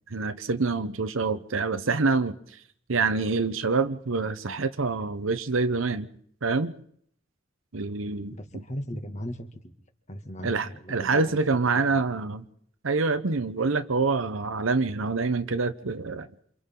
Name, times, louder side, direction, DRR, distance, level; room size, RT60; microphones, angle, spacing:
voice 1, 0.1-2.4 2.9-6.1 6.4-6.7 7.7-8.6 10.4-12.4 12.8-16.3, right 4 dB, 85° right, 0.9 m, -26 dB
voice 2, 8.3-9.5 10.1-11.4 11.9-12.0, equal, 35° left, 2.2 m, -37 dB
28.5 x 27.0 x 3.9 m
head